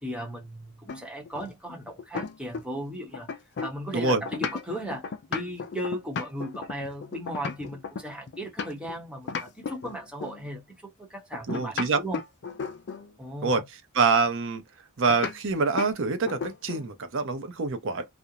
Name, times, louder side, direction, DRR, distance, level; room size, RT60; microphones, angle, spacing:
voice 1, 0.0-3.3 3.6-12.2 13.2-13.6, equal, 5° right, 0.8 m, -36 dB
sound 1, 0.9-2.9 3.1-9.0 9.3-10.4 11.3-13.1 15.1-15.4 15.8-16.0 16.3-16.9, left 5 dB, 50° left, 0.4 m, -35 dB
voice 2, 11.5-12.0 13.4-13.6 13.9-14.6 15.0-18.1, right 4 dB, 60° right, 0.6 m, -25 dB
2.4 x 2.0 x 2.7 m
head